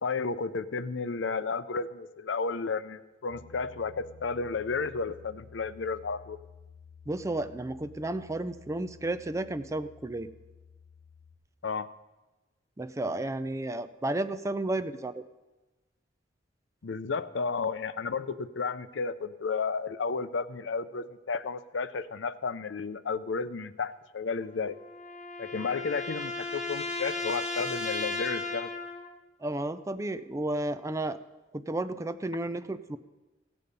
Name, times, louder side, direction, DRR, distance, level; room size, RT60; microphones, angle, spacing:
voice 1, 0.0-6.4 11.6-11.9 16.8-24.8 25.4-28.7, left 4 dB, 85° left, 14 dB, 0.6 m, -32 dB
Piano, 3.3-11.4, left 6 dB, 60° left, 2.7 m, -53 dB
voice 2, 7.1-10.3 12.8-15.2 29.4-31.2 31.5-33.0, right 2 dB, 15° right, 11 dB, 0.4 m, -32 dB
sound 1, 24.4-29.2, left 2 dB, 40° left, 1.0 m, -35 dB
15.5 x 8.5 x 5.3 m, 1.1 s
head